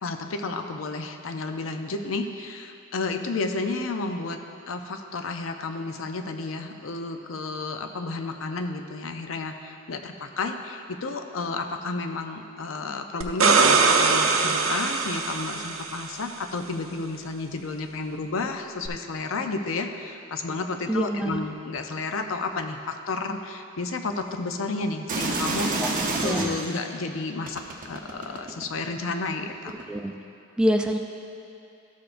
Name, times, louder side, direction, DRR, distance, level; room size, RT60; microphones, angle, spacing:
voice 1, 0.0-25.9 26.2-29.9, left 3 dB, 75° left, 6 dB, 0.5 m, -32 dB
sound 1, 13.2-16.0 18.9-19.0, right 4 dB, 90° right, 0.6 m, -21 dB
voice 2, 20.9-21.4 25.8-25.9 26.1-26.5 29.9-30.1 30.6-31.0, equal, 5° right, 3 dB, 0.3 m, -25 dB
sound 2, 25.1-26.8 27.5-28.9 29.7-29.8, right 2 dB, 40° right, 0.8 m, -28 dB
13.0 x 6.8 x 2.5 m, 2.6 s
head